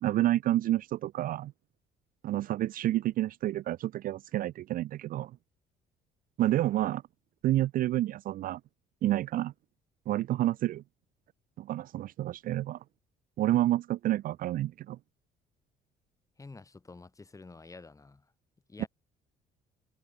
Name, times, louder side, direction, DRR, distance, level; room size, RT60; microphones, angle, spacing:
voice 1, 0.0-1.5 2.2-5.3 6.4-7.0 7.4-8.6 9.0-9.5 10.1-10.8 11.6-12.8 13.4-15.0 18.8-18.9, right 14 dB, 55° right, 0.4 m, -29 dB
voice 2, 16.4-18.3 18.7-18.9, left 3 dB, 20° left, 6.7 m, -49 dB
cardioid pair, 110°, 17 cm